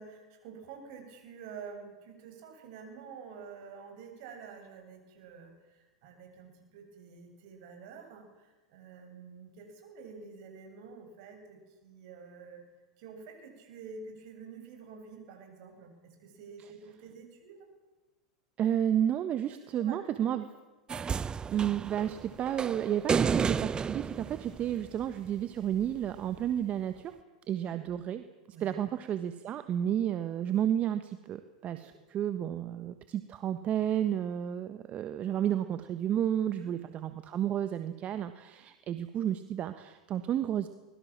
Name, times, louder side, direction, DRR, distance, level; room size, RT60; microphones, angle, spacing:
voice 1, 0.0-12.6 13.0-17.7 19.8-20.3 24.7-24.8 27.5-27.8 28.5-28.8 31.6-31.9 36.6-36.7, right 5 dB, 60° right, 4 dB, 7.8 m, -49 dB
voice 2, 18.6-20.5 21.5-27.1 27.5-28.2 28.6-40.7, right 10 dB, 40° right, 10 dB, 1.4 m, -31 dB
sound 1, 20.9-25.3 26.4-26.5, right 6 dB, 25° right, 0.7 m, -32 dB
24.0 x 22.0 x 7.5 m, 1.2 s
hypercardioid pair, 100°, 4 cm